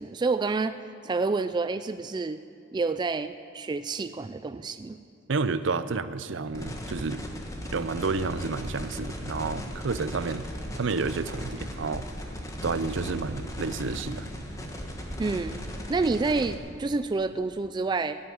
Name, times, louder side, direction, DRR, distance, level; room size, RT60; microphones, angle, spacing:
voice 1, 0.0-2.4 2.7-5.0 15.2-15.6 15.9-18.2, right 3 dB, 20° right, 11 dB, 0.3 m, -28 dB
voice 2, 5.3-7.2 7.7-10.5 10.8-12.1 12.6-14.3, right 4 dB, 65° right, 13 dB, 0.6 m, -30 dB
sound 1, 6.5-16.5, equal, 15° left, 1.4 m, -37 dB
16.0 x 8.0 x 9.2 m, 2.5 s
head